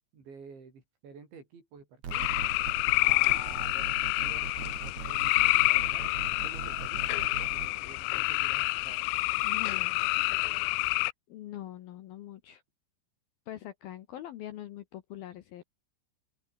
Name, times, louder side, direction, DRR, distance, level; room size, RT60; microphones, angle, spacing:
voice 1, 0.1-2.3 3.0-6.1 6.4-9.0, right 5 dB, 70° right, 8.9 m, -50 dB
sound 1, 2.0-7.7, right 7 dB, 40° right, 3.7 m, -41 dB
sound 2, 2.1-11.1, left 24 dB, 90° left, 2.5 m, -28 dB
voice 2, 9.4-10.0 11.0-12.6 13.5-15.6, left 13 dB, 70° left, 2.4 m, -43 dB
open air
omnidirectional pair, 5.5 m